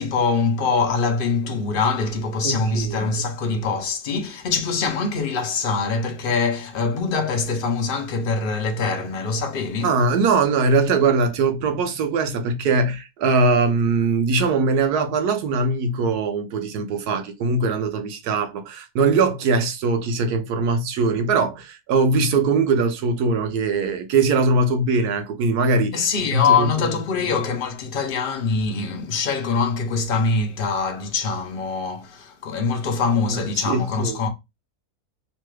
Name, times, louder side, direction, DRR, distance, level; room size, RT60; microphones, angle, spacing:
voice 1, 0.0-9.9 25.9-34.3, left 4 dB, 75° left, 0.5 m, -23 dB
voice 2, 2.4-3.1 9.8-26.1 26.3-26.9 33.3-34.2, right 3 dB, 90° right, 1.2 m, -21 dB
3.1 x 2.2 x 3.1 m
omnidirectional pair, 1.6 m